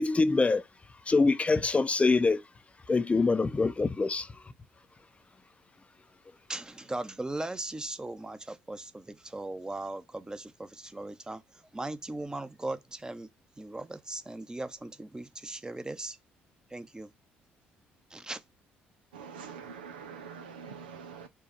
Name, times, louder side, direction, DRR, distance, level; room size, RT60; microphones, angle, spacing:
voice 1, 0.0-2.4 2.9-4.5, left 3 dB, 25° left, 0.6 m, -25 dB
voice 2, 6.5-13.3 13.6-16.2 16.7-17.1 18.1-18.4, right 2 dB, 15° right, 0.8 m, -38 dB
voice 3, 19.1-21.3, right 6 dB, 90° right, 0.5 m, -44 dB
4.7 x 2.4 x 4.3 m
hypercardioid pair, 55°, 5 cm